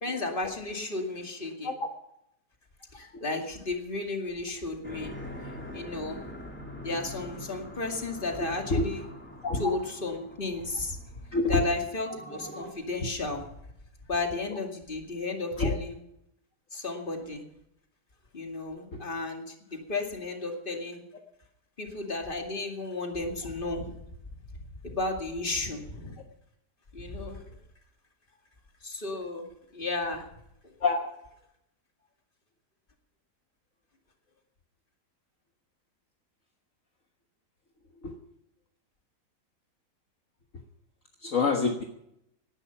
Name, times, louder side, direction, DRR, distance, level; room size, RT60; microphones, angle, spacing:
voice 1, 0.0-1.7 2.9-5.2 5.4-6.2 6.8-9.0 9.5-11.0 11.5-13.5 14.1-16.0 16.7-17.4 18.3-21.0 21.8-24.0 24.5-26.2 26.9-27.6 28.8-29.5 29.7-30.3 30.6-30.7, left 3 dB, 30° left, 3 dB, 2.4 m, -33 dB
sound 1, 4.8-12.7, left 1 dB, 5° left, 2.3 m, -44 dB
voice 2, 11.3-11.7 15.6-15.7 18.9-19.0 30.8-31.0 38.0-38.2 41.2-41.8, left 3 dB, 50° left, 3 dB, 1.7 m, -26 dB
18.5 x 11.5 x 5.8 m, 0.79 s
omnidirectional pair, 1.8 m